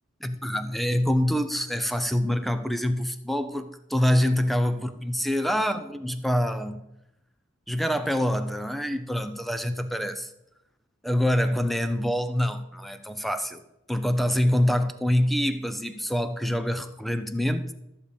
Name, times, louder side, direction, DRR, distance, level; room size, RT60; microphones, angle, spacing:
voice 1, 0.2-6.8 7.7-10.3 11.0-13.6 13.9-17.7, equal, ahead, 10 dB, 0.7 m, -25 dB
13.5 x 6.9 x 5.2 m, 0.88 s
head